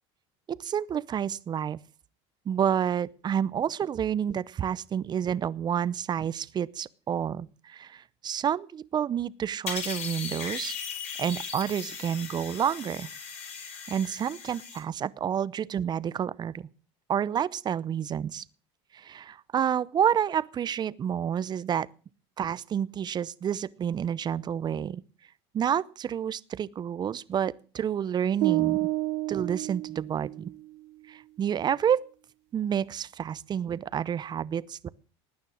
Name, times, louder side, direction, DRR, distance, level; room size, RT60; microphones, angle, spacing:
voice 1, 0.5-1.8 2.5-10.8 11.2-13.1 13.9-16.7 17.1-18.4 18.9-21.9 22.4-25.0 25.5-28.9 29.3-30.5 31.1-32.0 32.5-34.9, right 8 dB, 30° right, 0.7 m, -29 dB
sound 1, 9.7-14.8, left 6 dB, 50° left, 6.1 m, -37 dB
sound 2, 28.4-30.6, right 20 dB, 70° right, 0.9 m, -29 dB
18.0 x 9.6 x 6.4 m
supercardioid pair, 115°, 14 cm